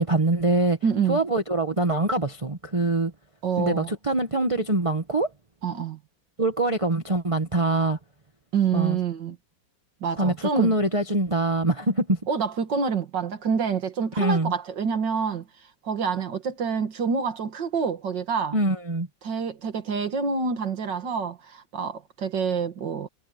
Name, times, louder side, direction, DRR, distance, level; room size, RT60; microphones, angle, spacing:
voice 1, 0.0-0.8 1.1-3.1 3.6-5.3 6.4-8.0 8.7-9.0 10.2-12.2 14.2-14.5 18.5-19.1, right 2 dB, 20° right, 1.4 m, -24 dB
voice 2, 0.8-1.2 3.4-3.9 5.6-6.0 8.5-9.4 10.0-10.7 12.3-15.4 15.8-18.6 19.2-23.1, right 6 dB, 80° right, 2.4 m, -27 dB
omnidirectional pair, 1.9 m